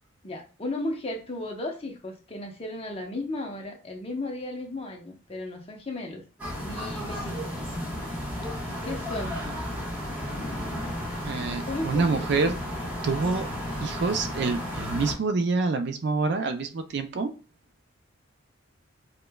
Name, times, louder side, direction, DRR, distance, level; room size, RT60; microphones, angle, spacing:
voice 1, 0.2-6.2 6.6-7.6 8.8-9.4 11.6-12.4, left 2 dB, 30° left, 2 dB, 0.7 m, -35 dB
sound 1, 6.4-15.1, left 1 dB, 10° right, 1.2 m, -33 dB
voice 2, 11.2-12.6 13.0-13.5 13.8-17.3, right 4 dB, 55° right, 8 dB, 0.4 m, -27 dB
5.0 x 2.2 x 2.2 m, 0.35 s
head